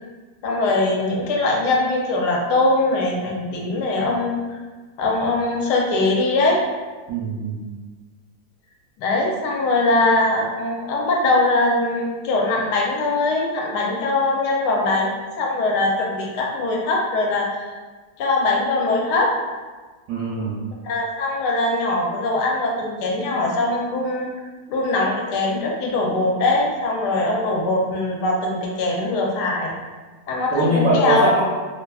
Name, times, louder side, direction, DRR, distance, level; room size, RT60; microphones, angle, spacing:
voice 1, 0.4-4.6 5.0-6.6 9.0-17.7 18.2-19.3 20.8-24.3 24.7-29.7 30.3-31.3, left 2 dB, 75° left, -1 dB, 1.1 m, -21 dB
voice 2, 7.1-7.7 20.1-20.6 30.5-31.4, right 1 dB, 75° right, -6 dB, 0.8 m, -21 dB
2.9 x 2.3 x 2.3 m, 1.3 s
omnidirectional pair, 1.9 m